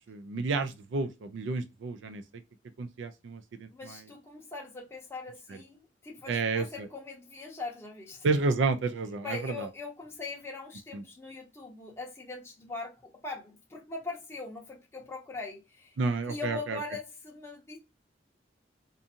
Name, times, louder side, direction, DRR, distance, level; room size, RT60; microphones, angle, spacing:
voice 1, 0.1-2.2 2.8-4.0 6.3-6.7 8.2-9.7 10.9-11.0 16.0-16.8, right 4 dB, 80° right, 0.4 m, -30 dB
voice 2, 3.7-8.2 9.2-16.0 16.3-17.8, left 3 dB, 15° left, 0.6 m, -41 dB
2.5 x 2.5 x 2.7 m
head